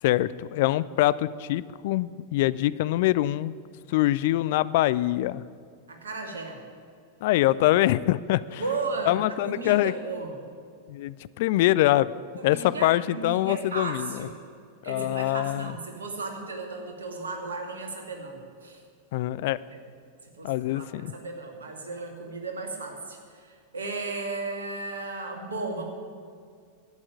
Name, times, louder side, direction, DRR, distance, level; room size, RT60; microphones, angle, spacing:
voice 1, 0.0-3.6 3.9-5.4 7.2-8.6 9.1-9.9 10.9-12.1 12.4-14.3 14.9-15.7 19.1-19.6 20.4-21.1, left 15 dB, 50° left, 18 dB, 0.4 m, -24 dB
voice 2, 5.9-6.6 8.6-10.4 12.4-14.5 14.8-18.8 19.7-19.8 20.4-25.8, right 3 dB, 70° right, 2 dB, 2.3 m, -35 dB
11.5 x 8.8 x 10.0 m, 2.2 s
figure-of-eight pair, 90°, 0 cm